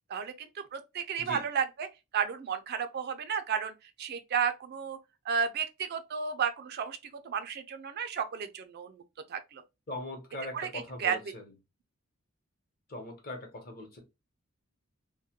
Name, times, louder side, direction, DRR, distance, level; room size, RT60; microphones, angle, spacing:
voice 1, 0.1-1.9 2.1-3.7 4.0-5.0 5.3-7.0 7.2-9.0 9.3-9.6 10.5-11.2, right 7 dB, 50° right, 0.4 m, -32 dB
voice 2, 9.9-11.5 12.9-14.0, left 1 dB, 45° left, 0.8 m, -40 dB
2.3 x 2.1 x 2.8 m
head